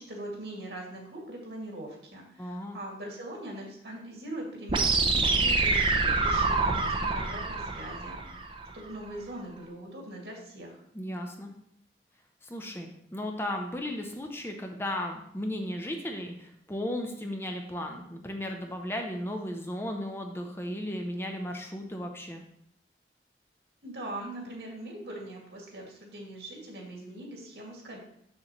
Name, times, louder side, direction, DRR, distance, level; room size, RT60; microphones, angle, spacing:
voice 1, 0.0-10.8 23.8-28.0, right 1 dB, 80° right, -1 dB, 2.1 m, -41 dB
voice 2, 2.4-2.8 10.9-11.5 12.4-22.4, left 1 dB, 15° left, 3 dB, 0.6 m, -35 dB
sound 1, 4.7-8.7, right 3 dB, 30° right, 0.6 m, -26 dB
7.2 x 6.5 x 3.0 m, 0.72 s
head